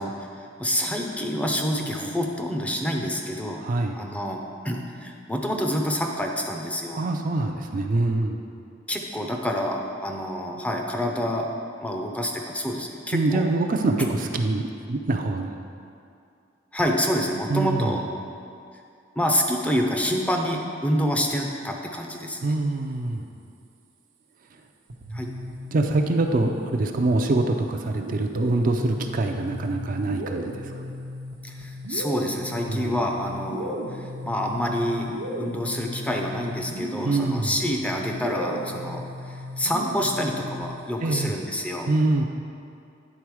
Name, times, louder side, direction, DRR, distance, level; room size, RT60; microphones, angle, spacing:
voice 1, 0.0-7.0 8.9-11.5 11.8-13.5 16.7-18.0 19.2-22.4 25.1-25.3 31.4-35.1 35.4-41.9, equal, 5° left, 1 dB, 0.5 m, -27 dB
voice 2, 3.6-4.0 6.9-8.4 13.1-15.6 17.5-17.9 22.4-23.3 25.7-30.7 32.7-33.0 37.0-37.5 41.0-41.3 41.9-42.3, right 2 dB, 45° right, 4 dB, 0.4 m, -24 dB
sound 1, 24.9-27.0 28.0-40.9, equal, 85° right, 0.7 m, -36 dB
9.8 x 3.9 x 4.7 m, 2.4 s
head